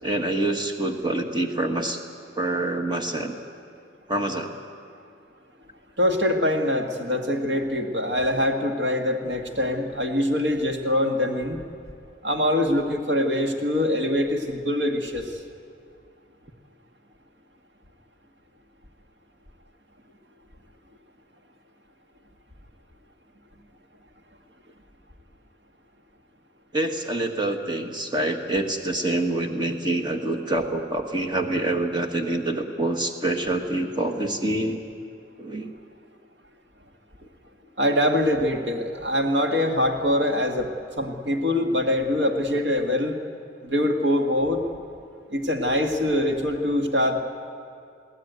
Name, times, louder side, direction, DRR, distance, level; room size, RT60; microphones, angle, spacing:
voice 1, 0.0-2.0 2.4-3.4 4.1-4.5 26.7-34.8 35.4-35.7, right 2 dB, 25° right, 4 dB, 1.5 m, -26 dB
voice 2, 6.0-11.6 12.2-15.3 37.8-43.2 43.6-44.6 45.3-47.2, left 1 dB, 70° right, 4 dB, 1.9 m, -24 dB
21.5 x 16.5 x 9.4 m, 2.4 s
head